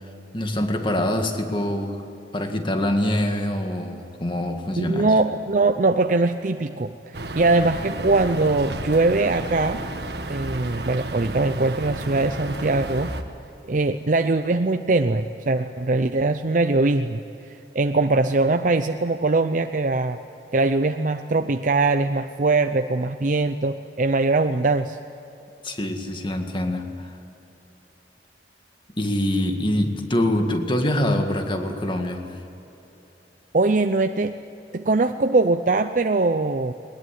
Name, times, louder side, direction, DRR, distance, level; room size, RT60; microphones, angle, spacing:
voice 1, 0.3-2.0 2.3-5.2 25.6-27.2 28.9-32.4, left 1 dB, 30° left, 5 dB, 1.9 m, -25 dB
voice 2, 4.8-9.8 10.3-13.2 13.7-17.2 17.5-20.2 20.5-25.0 33.5-34.4 34.7-36.7, right 3 dB, 45° right, 8 dB, 0.6 m, -21 dB
sound 1, 7.1-13.2, right 1 dB, 65° right, 1.7 m, -32 dB
21.5 x 20.0 x 9.8 m, 2.9 s
head